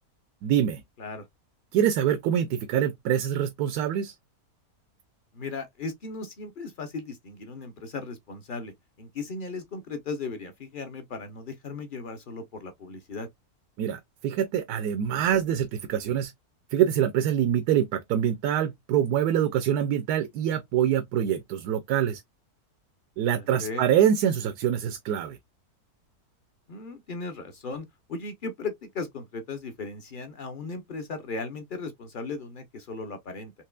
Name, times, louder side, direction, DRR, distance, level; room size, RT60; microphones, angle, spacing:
voice 1, 0.4-0.8 1.7-4.1 13.8-16.3 16.7-22.2 23.2-25.4, right 10 dB, 85° right, 1.1 m, -25 dB
voice 2, 5.3-13.3 23.4-23.8 26.7-33.5, left 3 dB, 50° left, 0.6 m, -37 dB
4.4 x 3.0 x 2.3 m
omnidirectional pair, 1.6 m